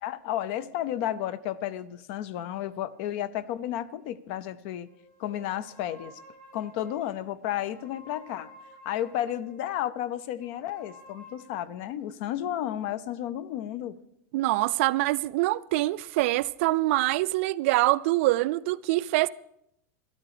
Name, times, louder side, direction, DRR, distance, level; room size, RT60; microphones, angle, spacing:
voice 1, 0.0-4.9 5.2-6.2 6.5-8.5 8.8-14.0, left 11 dB, 45° left, 0.6 m, -32 dB
sound 1, 2.4-4.5 4.8-9.7 10.4-13.0, left 1 dB, 10° left, 2.8 m, -54 dB
voice 2, 14.3-19.3, right 18 dB, 50° right, 0.4 m, -25 dB
13.0 x 12.0 x 4.9 m
supercardioid pair, 160°, 9 cm